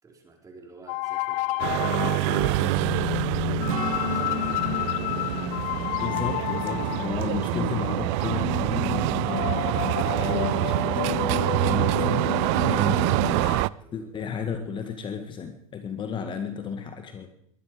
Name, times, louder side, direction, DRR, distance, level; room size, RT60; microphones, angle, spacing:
voice 1, 0.0-6.8 13.8-14.1, right 3 dB, 20° right, 2 dB, 4.6 m, -51 dB
sound 1, 0.9-13.6, left 18 dB, 45° left, 0.8 m, -31 dB
sound 2, 1.6-13.7, right 21 dB, 55° right, 0.5 m, -26 dB
Strum, 3.7-8.4 8.8-9.0, right 7 dB, 75° right, 2.4 m, -39 dB
voice 2, 6.0-13.2 13.9-17.3, left 6 dB, 30° left, 7 dB, 1.9 m, -34 dB
22.0 x 11.5 x 5.1 m, 0.68 s
hypercardioid pair, 115°, 18 cm